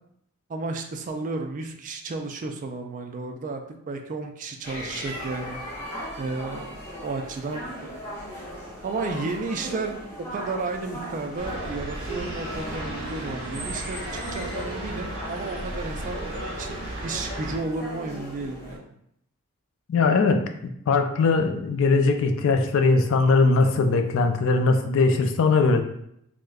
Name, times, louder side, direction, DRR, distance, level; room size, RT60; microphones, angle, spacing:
voice 1, 0.5-5.6 6.2-8.0 8.8-10.0 10.3-16.2 16.6-18.9, right 3 dB, 35° right, 4 dB, 0.3 m, -33 dB
sound 1, 4.6-18.8, equal, 15° left, 0.9 m, -38 dB
sound 2, 11.3-17.6, right 1 dB, 60° right, 0.9 m, -35 dB
voice 2, 19.9-25.8, left 3 dB, 60° left, 6 dB, 0.4 m, -20 dB
4.8 x 2.1 x 2.3 m, 0.74 s
head